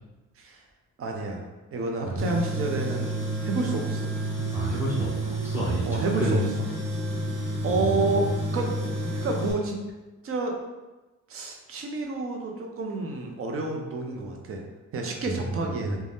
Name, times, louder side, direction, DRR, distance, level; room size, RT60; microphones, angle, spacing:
voice 1, 1.0-1.4 1.7-4.1 5.8-6.4 7.6-8.7 9.1-9.8 10.2-10.6 11.3-14.6 14.9-16.0, right 3 dB, 50° right, 2 dB, 0.6 m, -29 dB
Tools, 2.2-9.5, right 2 dB, 85° right, 0.9 m, -30 dB
voice 2, 4.5-5.1 5.4-6.5 7.7-8.3 15.3-16.0, equal, 5° right, -8 dB, 0.7 m, -30 dB
2.6 x 2.2 x 3.4 m, 1.1 s
cardioid pair, 90°, 30 cm